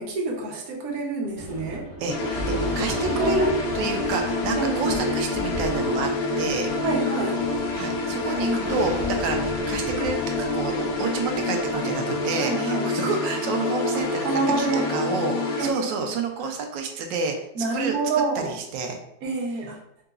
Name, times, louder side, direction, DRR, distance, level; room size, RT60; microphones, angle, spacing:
voice 1, 0.0-1.9 2.8-3.5 4.5-5.0 6.8-7.4 8.3-8.7 11.7-11.8 12.3-12.9 13.9-14.9 15.6-16.1 17.5-18.6 19.2-19.8, right 3 dB, 60° right, -1 dB, 1.2 m, -28 dB
Thunder, 1.3-12.2, equal, 10° right, 0.8 m, -37 dB
voice 2, 2.0-3.5 3.7-6.1 6.4-6.7 7.7-10.2 10.5-17.4 17.7-19.0, right 4 dB, 90° right, 4 dB, 1.3 m, -29 dB
sound 1, 2.1-15.6, left 2 dB, 70° left, 1.2 m, -27 dB
3.8 x 3.7 x 2.4 m, 0.78 s
omnidirectional pair, 1.9 m